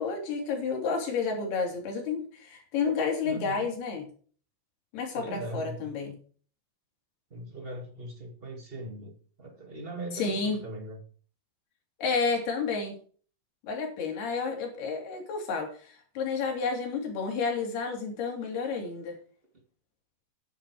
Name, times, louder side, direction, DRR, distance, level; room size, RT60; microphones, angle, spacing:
voice 1, 0.0-4.0 4.9-6.1 10.1-10.6 12.0-13.0 13.7-19.1, left 5 dB, 65° left, 1 dB, 5.2 m, -30 dB
voice 2, 3.2-3.8 5.1-6.1 7.3-11.0, right 2 dB, 35° right, 3 dB, 0.8 m, -40 dB
10.0 x 10.0 x 4.9 m, 0.43 s
omnidirectional pair, 4.9 m